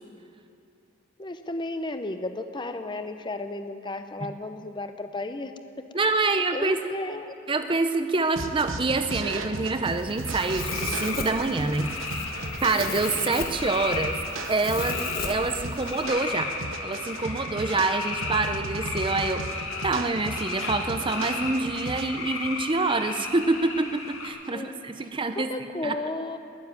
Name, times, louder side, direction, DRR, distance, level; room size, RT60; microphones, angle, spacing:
voice 1, 1.2-5.9 6.2-7.3 24.5-26.4, left 2 dB, 20° left, 8 dB, 0.7 m, -34 dB
voice 2, 5.9-6.8 7.5-11.9 12.6-14.2 14.5-16.5 16.8-25.5 25.8-25.9, right 3 dB, 25° right, 8 dB, 0.6 m, -26 dB
sound 1, 8.4-22.0, right 2 dB, 75° right, 1.0 m, -36 dB
Domestic sounds home sounds, 9.8-16.0, left 4 dB, 45° left, 1.2 m, -37 dB
sound 2, 10.2-24.3, left 3 dB, 80° left, 2.4 m, -34 dB
20.5 x 7.2 x 9.5 m, 2.6 s
head